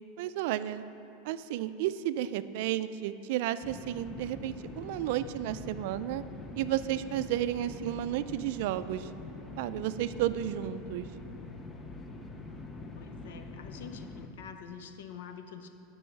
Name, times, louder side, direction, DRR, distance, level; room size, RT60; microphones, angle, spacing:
voice 1, 0.2-0.8 1.2-6.2 6.6-9.1 9.6-11.1, right 12 dB, 60° right, 13 dB, 0.4 m, -32 dB
sound 1, 3.6-14.3, left 3 dB, 15° left, 0.6 m, -44 dB
voice 2, 12.9-15.7, left 7 dB, 85° left, 7 dB, 0.7 m, -46 dB
10.0 x 5.4 x 7.2 m, 2.8 s
supercardioid pair, 160°, 0 cm